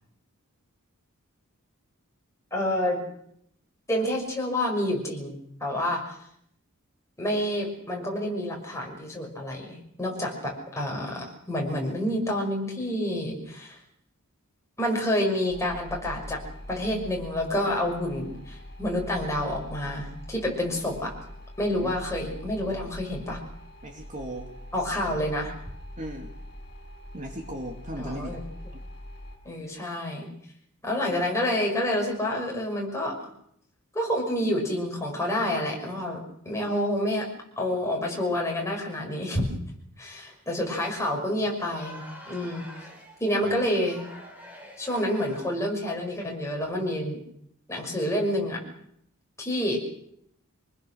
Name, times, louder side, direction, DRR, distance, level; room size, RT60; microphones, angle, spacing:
voice 1, 2.5-3.0 3.9-5.3 5.6-6.0 7.2-13.8 14.8-16.4 16.7-21.1 21.6-23.4 24.7-25.5 28.0-28.4 29.4-30.3 30.8-33.1 33.9-36.2 36.4-37.3 37.6-39.4 40.0-42.6 43.2-44.0 44.8-47.2 47.7-48.6 49.4-49.8, left 1 dB, 15° left, -1 dB, 6.1 m, -28 dB
sound 1, 15.5-29.4, left 1 dB, 45° left, 7.8 m, -42 dB
voice 2, 23.8-24.5 26.0-26.3 27.1-28.4 28.7-28.8 43.4-43.5, right 1 dB, 35° right, 2 dB, 2.7 m, -37 dB
Crowd, 41.6-45.7, equal, 10° right, 4.7 m, -46 dB
26.0 x 20.5 x 6.5 m, 0.73 s
head